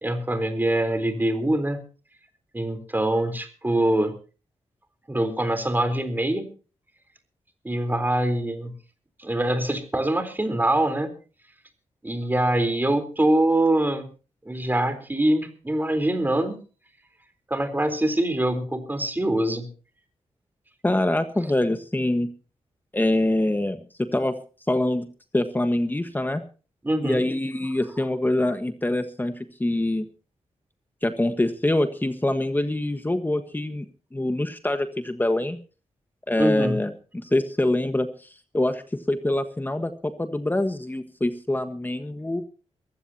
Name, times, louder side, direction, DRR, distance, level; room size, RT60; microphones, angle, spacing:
voice 1, 0.0-1.8 2.5-4.1 5.1-6.5 7.6-8.7 9.2-11.1 12.0-14.1 14.5-16.6 17.5-19.7 26.8-27.2 36.4-36.8, right 1 dB, 15° right, 8 dB, 3.9 m, -24 dB
voice 2, 20.8-22.3 22.9-24.4 24.7-25.1 25.3-26.4 27.0-30.0 31.0-33.9 34.1-35.6 36.3-36.9 37.2-38.3 38.5-38.8 39.1-42.4, left 1 dB, 15° left, 8 dB, 1.4 m, -24 dB
22.5 x 15.5 x 2.9 m, 0.36 s
cardioid pair, 85°, 12 cm